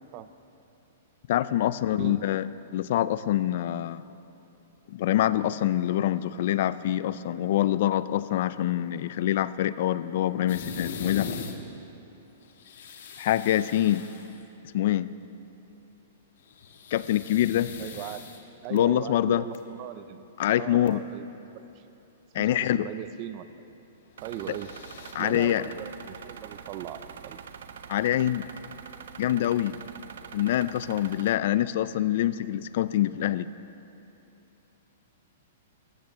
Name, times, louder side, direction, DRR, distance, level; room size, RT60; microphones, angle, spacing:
voice 1, 1.3-4.1 4.9-11.3 13.2-14.1 14.7-15.1 16.9-17.7 18.7-19.5 20.4-21.0 22.3-22.9 25.1-25.7 27.9-28.5 29.2-29.8 30.3-33.5, left 12 dB, 50° left, 16 dB, 0.3 m, -25 dB
voice 2, 1.9-2.2 17.8-18.3 18.6-20.2 20.6-21.3 21.5-21.8 22.4-23.5 24.2-24.7 25.2-27.4, right 12 dB, 30° right, 13 dB, 0.5 m, -39 dB
sound 1, 10.5-11.6 12.4-14.4 16.4-18.8 19.4-19.6 20.5-20.6 20.9-21.0 24.2-25.1, left 6 dB, 65° left, 1.3 m, -40 dB
sound 2, 24.2-31.3, right 7 dB, 75° right, 0.7 m, -44 dB
14.5 x 9.6 x 6.8 m, 2.9 s
hypercardioid pair, 170°, 0 cm